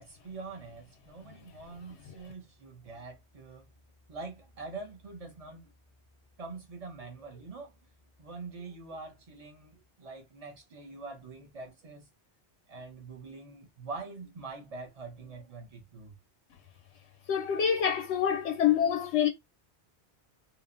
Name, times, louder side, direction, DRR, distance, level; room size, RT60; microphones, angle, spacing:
voice 1, 0.0-3.6 4.1-5.7 6.4-7.7 8.2-12.1 12.7-16.1, right 3 dB, 40° right, 0.7 m, -44 dB
voice 2, 17.3-19.3, left 9 dB, 85° left, 0.9 m, -26 dB
2.8 x 2.1 x 2.4 m
omnidirectional pair, 1.1 m